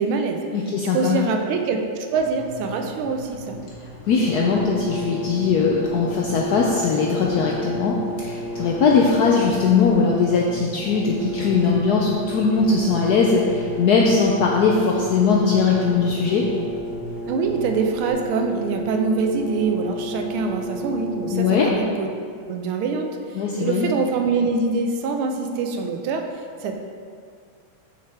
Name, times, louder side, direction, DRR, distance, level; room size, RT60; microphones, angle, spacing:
voice 1, 0.0-0.4 0.9-1.8 2.1-3.6 17.3-22.1 22.5-23.1 23.6-26.2 26.6-26.7, right 4 dB, 90° right, 4 dB, 1.5 m, -24 dB
voice 2, 0.5-1.2 4.1-16.5 21.3-21.7 23.3-23.9, left 5 dB, 75° left, -2 dB, 0.9 m, -20 dB
sound 1, 2.1-18.1, equal, 35° left, 1.9 m, -41 dB
Brass instrument, 4.1-21.9, equal, 70° right, 1.0 m, -32 dB
6.3 x 5.9 x 3.5 m, 2.2 s
omnidirectional pair, 2.3 m